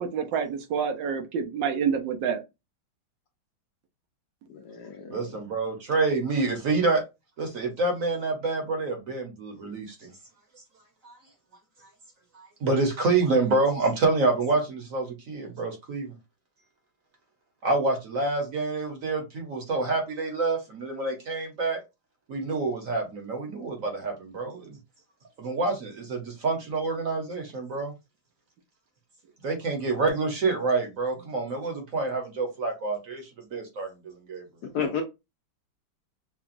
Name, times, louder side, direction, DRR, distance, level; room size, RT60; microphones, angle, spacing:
voice 1, 0.1-2.4, right 7 dB, 75° right, 1.3 m, -27 dB
voice 2, 4.5-5.4 34.7-35.0, left 6 dB, 65° left, 1.0 m, -32 dB
voice 3, 5.1-7.0 7.4-10.1 11.0-11.2 12.6-16.1 17.6-21.8 22.3-24.8 25.4-27.9 29.4-33.2 33.5-33.9 34.3-34.4, right 3 dB, 50° right, 1.2 m, -27 dB
5.8 x 2.3 x 2.5 m
omnidirectional pair, 2.2 m